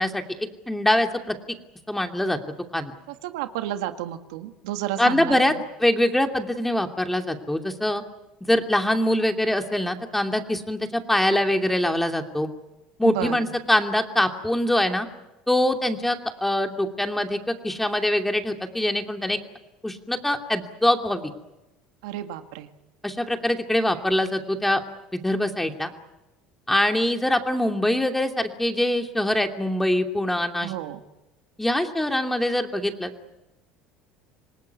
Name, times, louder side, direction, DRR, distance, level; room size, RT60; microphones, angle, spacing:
voice 1, 0.0-1.4 1.9-2.4 2.7-2.9 5.0-5.5 5.8-8.0 8.4-12.5 13.0-15.1 15.5-19.4 19.8-21.3 23.0-24.8 25.1-25.9 26.7-30.7 31.6-33.1, left 1 dB, 5° left, 5 dB, 2.8 m, -23 dB
voice 2, 3.1-5.6 13.0-13.5 22.0-22.7 30.6-31.0, right 13 dB, 85° right, 8 dB, 1.8 m, -31 dB
26.5 x 19.0 x 9.5 m, 0.99 s
supercardioid pair, 95°, 3 cm